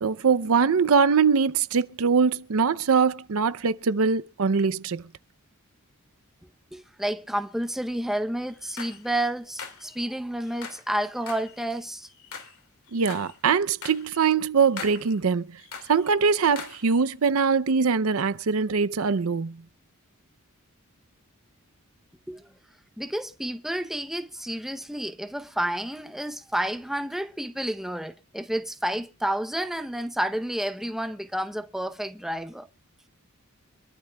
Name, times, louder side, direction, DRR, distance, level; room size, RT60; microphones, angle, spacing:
voice 1, 0.0-5.0 12.9-15.5 15.9-19.6, right 5 dB, 70° right, 0.6 m, -22 dB
voice 2, 6.7-12.1 22.3-22.5 23.0-32.7, right 1 dB, ahead, 0.7 m, -30 dB
sound 1, 8.5-9.1 9.6-10.1 10.4-10.9 11.2-12.6 12.9-13.4 13.8-14.3 14.6-15.2 15.6-16.1 16.6-17.0, left 6 dB, 75° left, 2.3 m, -42 dB
25.5 x 12.5 x 2.3 m
head